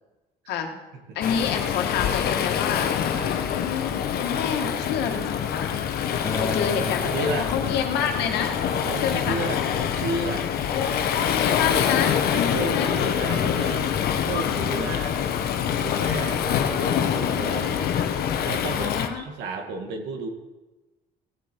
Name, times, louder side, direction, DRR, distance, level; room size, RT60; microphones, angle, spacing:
voice 1, 1.1-2.9 3.6-3.9 4.2-5.7 6.4-8.6 9.0-9.4 10.7-12.2 12.6-12.9 14.7-15.0 18.7-19.2, left 7 dB, 80° left, 4 dB, 1.7 m, -28 dB
Waves surf, 1.2-19.1, left 8 dB, 65° left, 1.0 m, -25 dB
Acoustic guitar, 6.2-11.4, left 3 dB, 20° left, 1.3 m, -37 dB
voice 2, 7.0-7.5 8.9-10.5 11.0-11.1 12.3-13.9 14.2-15.1 15.8-17.9 18.4-20.3, right 3 dB, 90° right, 4 dB, 2.0 m, -32 dB
17.0 x 7.8 x 4.6 m, 1.1 s
cardioid pair, 110°, 17 cm